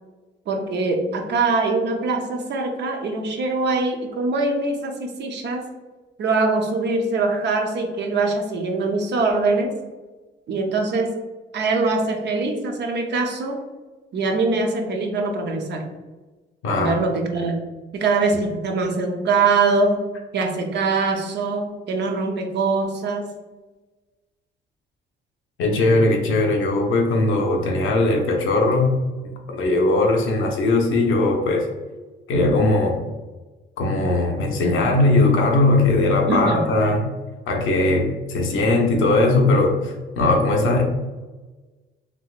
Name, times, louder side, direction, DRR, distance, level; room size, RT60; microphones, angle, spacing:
voice 1, 0.5-5.6 6.2-9.7 10.5-11.2 11.5-13.6 14.1-15.8 16.7-17.6 17.9-20.0 20.3-23.3 36.3-36.6, right 3 dB, 60° right, 3 dB, 0.6 m, -23 dB
voice 2, 16.6-17.0 25.6-28.9 29.5-31.7 32.3-33.0 33.8-37.1 37.5-40.8, left 2 dB, 85° left, 2 dB, 0.7 m, -19 dB
3.4 x 2.9 x 2.4 m, 1.2 s
cardioid pair, 90°, 20 cm